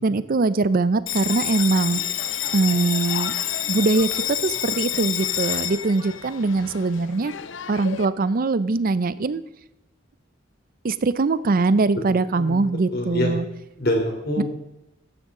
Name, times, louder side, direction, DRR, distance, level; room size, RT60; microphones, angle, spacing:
voice 1, 0.0-2.0 2.5-3.3 3.7-7.3 7.7-9.4 10.8-13.4 14.4-14.5, right 3 dB, 50° right, 16 dB, 0.5 m, -22 dB
Bell, 1.1-8.1, left 11 dB, 70° left, 0.6 m, -28 dB
voice 2, 12.9-13.3 13.8-14.4, left 1 dB, 55° left, 1 dB, 3.3 m, -25 dB
14.5 x 10.5 x 3.7 m, 0.91 s
head